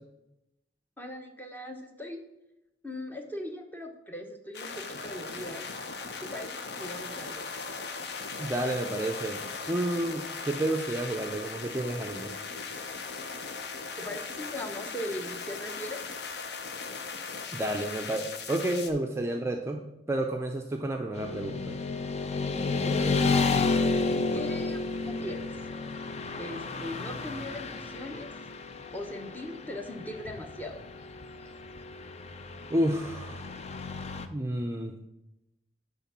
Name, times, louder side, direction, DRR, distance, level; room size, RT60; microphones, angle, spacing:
voice 1, 1.0-2.2 2.8-5.7 6.2-7.5 14.0-16.0 24.3-25.5 26.4-28.3 28.9-30.8, left 1 dB, 10° left, 3 dB, 0.9 m, -39 dB
sound 1, 4.5-18.9, left 4 dB, 70° left, 0.8 m, -38 dB
voice 2, 8.4-9.4 9.7-12.3 17.5-21.7 24.3-24.4 32.7-33.5 34.3-34.9, right 1 dB, 15° right, 3 dB, 0.5 m, -30 dB
Motorcycle / Traffic noise roadway noise, 21.1-34.3, left 3 dB, 40° left, 0.5 m, -31 dB
9.8 x 3.6 x 6.0 m, 0.89 s
head